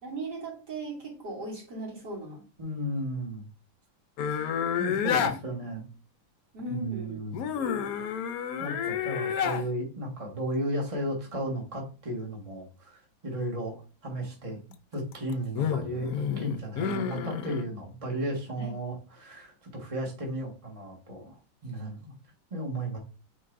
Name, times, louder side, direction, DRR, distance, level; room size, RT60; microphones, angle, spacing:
voice 1, 0.0-2.4 5.2-5.5 6.5-7.2 18.6-18.7, right 2 dB, 60° right, -4 dB, 3.2 m, -38 dB
voice 2, 2.6-3.5 4.8-5.9 6.7-7.4 8.6-14.6 14.9-21.4 21.6-22.1 22.5-23.0, right 1 dB, 20° right, -1 dB, 1.3 m, -34 dB
sound 1, 4.2-5.4 7.3-9.7 14.9-17.6, left 8 dB, 65° left, 0.9 m, -30 dB
9.3 x 4.0 x 2.6 m, 0.34 s
omnidirectional pair, 2.1 m